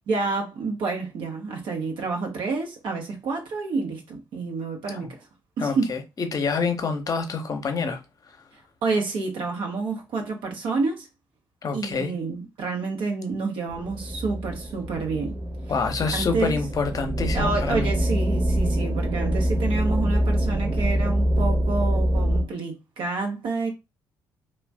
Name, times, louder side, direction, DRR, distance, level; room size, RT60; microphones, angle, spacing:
voice 1, 0.1-5.2 5.6-5.9 8.8-11.1 11.7-15.4 16.1-16.6 17.3-23.7, right 4 dB, 60° right, 0.8 m, -29 dB
voice 2, 5.6-8.0 11.6-12.1 15.7-17.9, left 4 dB, 40° left, 0.7 m, -27 dB
sound 1, 13.7-22.4, right 1 dB, 20° right, 0.9 m, -25 dB
2.4 x 2.1 x 3.4 m
figure-of-eight pair, 45°, 10 cm